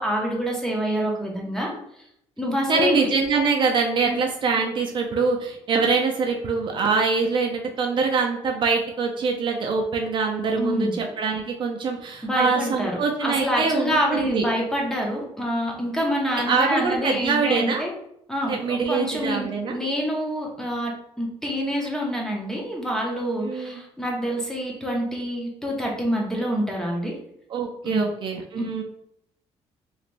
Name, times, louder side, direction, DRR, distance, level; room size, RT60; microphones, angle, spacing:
voice 1, 0.0-1.8 2.4-3.1 4.1-4.2 10.6-10.9 12.2-17.9 18.3-27.1 27.8-28.0, equal, 5° left, -2 dB, 0.7 m, -27 dB
voice 2, 2.7-14.4 16.3-17.8 18.5-19.8 23.4-23.8 27.5-28.8, right 4 dB, 45° right, 2 dB, 0.4 m, -24 dB
3.2 x 2.9 x 2.5 m, 0.76 s
cardioid pair, 150°, 11 cm